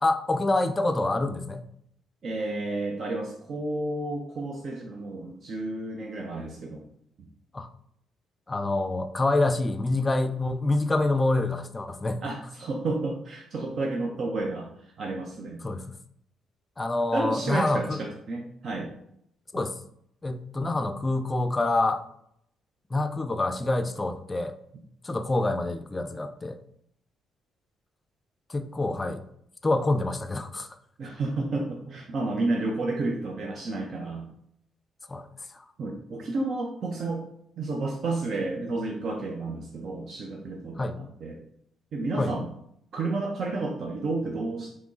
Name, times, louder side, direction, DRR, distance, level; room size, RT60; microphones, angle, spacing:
voice 1, 0.0-1.6 7.5-7.7 8.5-12.2 15.6-15.8 16.8-18.0 19.5-19.7 20.2-22.0 22.9-24.6 25.0-26.6 28.5-29.2 29.6-30.8 35.1-35.3 35.5-35.6 40.8-41.0 42.2-42.3, left 2 dB, 25° left, 9 dB, 0.4 m, -26 dB
voice 2, 2.2-6.9 7.2-7.3 12.2-14.7 15.0-15.6 17.1-18.9 31.0-34.3 35.8-37.2 37.6-41.4 41.9-42.5 42.9-44.8, right 2 dB, 55° right, 1 dB, 0.6 m, -31 dB
3.6 x 3.1 x 3.8 m, 0.72 s
cardioid pair, 90°, 0 cm